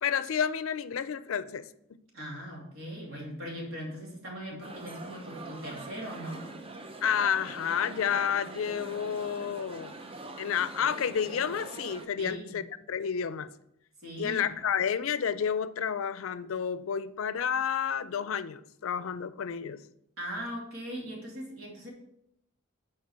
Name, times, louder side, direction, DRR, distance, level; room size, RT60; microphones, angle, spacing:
voice 1, 0.0-2.0 4.5-4.6 7.0-10.0 10.4-12.6 12.9-13.5 14.2-19.8, left 7 dB, 75° left, 0.4 m, -30 dB
voice 2, 2.1-6.4 12.2-12.6 14.0-14.5 20.2-21.9, equal, 75° right, 2.4 m, -39 dB
sound 1, 4.6-12.1, right 2 dB, 30° right, 0.6 m, -43 dB
7.4 x 4.5 x 4.7 m
head